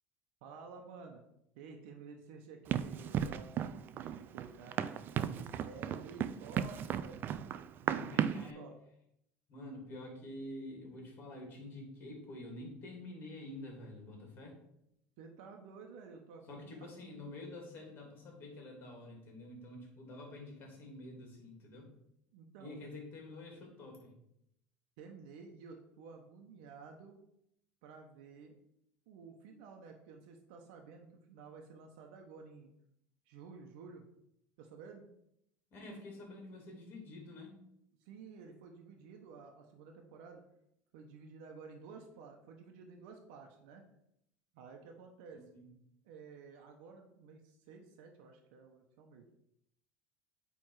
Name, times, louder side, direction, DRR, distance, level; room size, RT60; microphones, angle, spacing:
voice 1, 0.4-1.2 1.5-4.9 5.2-7.2 7.8-8.2 8.5-8.7 15.2-16.9 22.3-22.9 25.0-27.2 27.8-28.5 29.1-32.7 33.3-34.0 34.6-35.1 38.0-40.4 40.9-43.8 44.5-45.5 46.0-49.3, right 5 dB, 80° right, 2 dB, 1.0 m, -52 dB
Run, 2.7-8.5, right 9 dB, 40° right, 0.4 m, -36 dB
voice 2, 8.0-8.7 9.5-14.5 16.5-21.9 22.6-24.1 35.7-37.6 45.3-45.6, left 1 dB, 40° left, 0 dB, 2.9 m, -48 dB
8.7 x 3.5 x 4.8 m, 0.78 s
cardioid pair, 135°, 6 cm